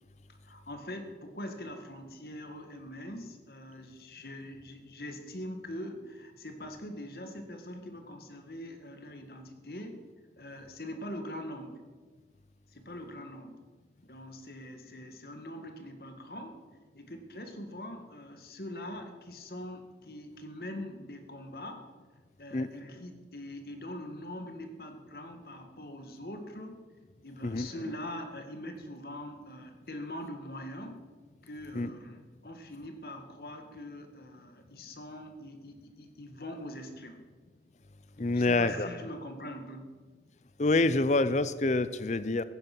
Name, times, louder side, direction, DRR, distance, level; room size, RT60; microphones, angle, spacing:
voice 1, 0.4-10.0 10.4-11.8 12.7-13.6 14.0-16.6 16.9-21.9 22.4-26.8 27.2-31.0 31.4-37.2 38.3-39.9, left 1 dB, 60° left, 6 dB, 1.8 m, -43 dB
voice 2, 38.2-38.9 40.6-42.4, left 2 dB, 40° left, 15 dB, 0.6 m, -27 dB
16.5 x 9.5 x 6.1 m, 1.4 s
head